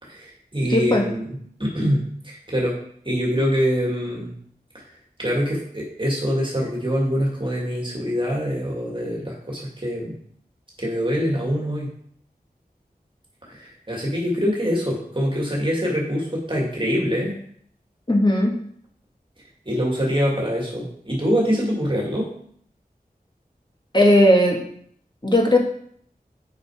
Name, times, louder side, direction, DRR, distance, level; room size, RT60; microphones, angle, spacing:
voice 1, 0.0-2.8 3.0-4.3 4.7-4.8 5.2-10.2 10.8-11.9 13.4-17.3 19.7-22.3, equal, 30° right, -3 dB, 2.2 m, -24 dB
voice 2, 0.7-1.0 18.1-18.5 23.9-24.6 25.2-25.6, left 1 dB, 30° left, 0 dB, 1.6 m, -16 dB
6.6 x 5.3 x 4.8 m, 0.63 s
wide cardioid pair, 55°, 16 cm